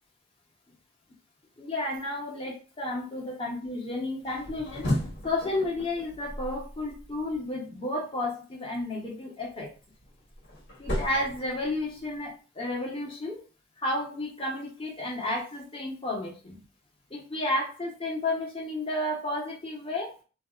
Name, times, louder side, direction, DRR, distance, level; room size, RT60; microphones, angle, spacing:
voice 1, 1.6-4.9 5.2-9.7 10.8-13.4 13.8-16.6 17.1-20.1, left 1 dB, 25° left, -2 dB, 1.0 m, -32 dB
sound 1, 4.2-7.4 9.6-12.2, equal, 60° left, 1.2 m, -35 dB
2.7 x 2.3 x 3.4 m, 0.36 s
head